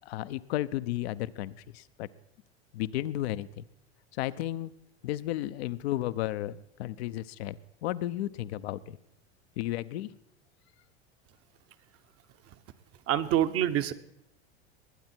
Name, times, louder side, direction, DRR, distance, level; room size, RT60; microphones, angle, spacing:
voice 1, 0.1-2.1 2.7-3.6 4.1-4.7 5.0-9.0 9.6-10.1, left 14 dB, 70° left, 0.7 m, -33 dB
voice 2, 13.1-13.9, right 11 dB, 45° right, 1.0 m, -26 dB
21.0 x 9.3 x 4.5 m
hypercardioid pair, 90°, 32 cm